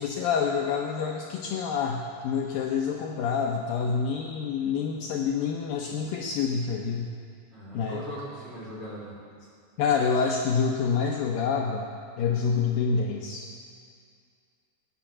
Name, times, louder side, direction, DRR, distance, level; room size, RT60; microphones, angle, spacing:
voice 1, 0.0-7.1 7.7-8.0 9.8-11.9 12.2-13.5, left 6 dB, 75° left, 0 dB, 2.3 m, -27 dB
voice 2, 7.5-9.2, equal, 15° right, -7 dB, 2.8 m, -39 dB
18.0 x 10.0 x 7.3 m, 2.3 s
omnidirectional pair, 4.8 m